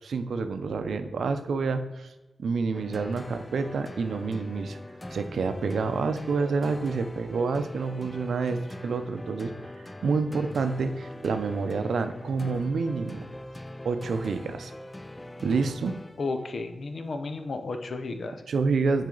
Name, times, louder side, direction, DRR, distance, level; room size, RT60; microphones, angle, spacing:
voice 1, 0.0-2.1 2.4-4.8 5.1-13.3 13.8-14.7 15.4-15.9 18.5-19.1, right 4 dB, 85° right, 9 dB, 0.5 m, -28 dB
sound 1, 2.7-16.5, left 1 dB, 20° left, 0.4 m, -43 dB
voice 2, 16.2-18.4, left 3 dB, 65° left, 7 dB, 0.7 m, -33 dB
7.4 x 4.9 x 3.9 m, 1.1 s
cardioid pair, 55°, 0 cm